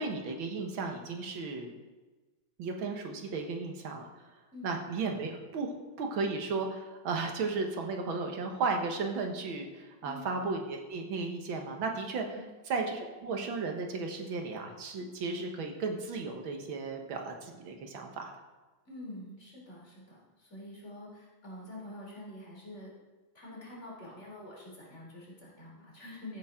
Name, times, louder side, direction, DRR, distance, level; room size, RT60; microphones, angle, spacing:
voice 1, 0.0-1.7 2.6-4.3 4.6-12.4 12.7-18.3, right 4 dB, 80° right, 3 dB, 2.0 m, -35 dB
voice 2, 18.9-22.9 23.3-26.4, left 1 dB, 35° left, -4 dB, 3.5 m, -46 dB
15.0 x 8.8 x 3.7 m, 1.2 s
omnidirectional pair, 2.2 m